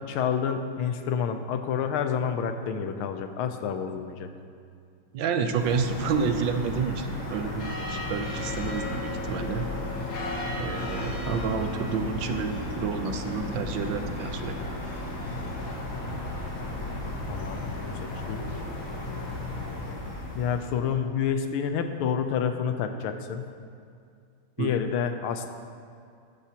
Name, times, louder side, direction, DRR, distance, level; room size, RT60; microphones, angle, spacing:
voice 1, 0.1-4.3 17.3-18.4 20.4-23.5 24.6-25.5, left 7 dB, 80° left, 7 dB, 1.6 m, -29 dB
voice 2, 5.1-9.7 10.6-14.6 24.6-24.7, right 5 dB, 70° right, 6 dB, 1.4 m, -29 dB
sound 1, 5.5-21.0, left 2 dB, 65° left, 2.4 m, -34 dB
Bowed string instrument, 5.9-9.0, right 2 dB, 15° right, 0.8 m, -52 dB
13.5 x 13.0 x 2.9 m, 2.3 s
omnidirectional pair, 2.3 m